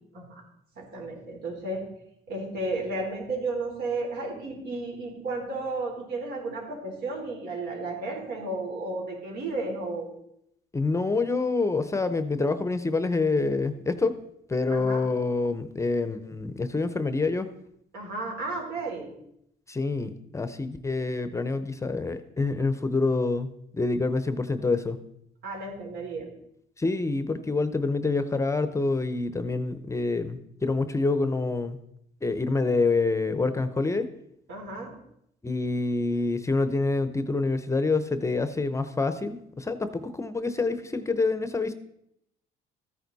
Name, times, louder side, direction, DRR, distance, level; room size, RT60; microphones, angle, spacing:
voice 1, 0.8-1.8 2.3-10.1 14.7-15.0 17.9-19.1 25.4-26.3 34.5-34.9, right 2 dB, 70° right, 0 dB, 4.0 m, -33 dB
voice 2, 10.7-14.2 14.5-17.5 19.7-25.0 26.8-31.8 32.2-34.1 35.4-41.7, left 3 dB, 15° left, 11 dB, 0.7 m, -27 dB
14.0 x 9.2 x 4.1 m, 0.75 s
cardioid pair, 110°, 17 cm